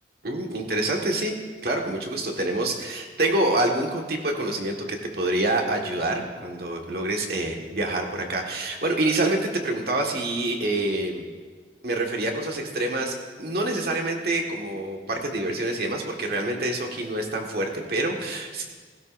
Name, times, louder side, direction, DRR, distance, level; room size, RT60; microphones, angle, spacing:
voice 1, 0.2-1.3 1.6-11.3 11.8-18.7, right 2 dB, 60° right, 1 dB, 1.7 m, -26 dB
16.5 x 16.5 x 2.6 m, 1.5 s
head